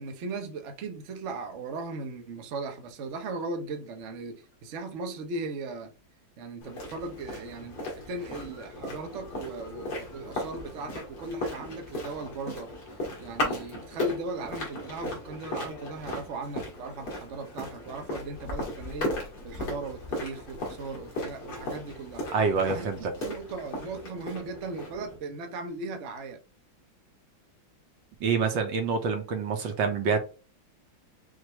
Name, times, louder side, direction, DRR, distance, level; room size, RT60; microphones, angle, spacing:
voice 1, 0.0-5.9 6.4-12.7 13.2-19.2 19.4-22.3 22.6-26.4, right 3 dB, 55° right, 0.8 m, -38 dB
sound 1, 6.6-25.2, left 1 dB, 60° left, 2.3 m, -37 dB
voice 2, 22.3-23.0 28.2-30.2, right 5 dB, 75° right, 1.6 m, -26 dB
6.3 x 2.5 x 3.0 m
omnidirectional pair, 2.1 m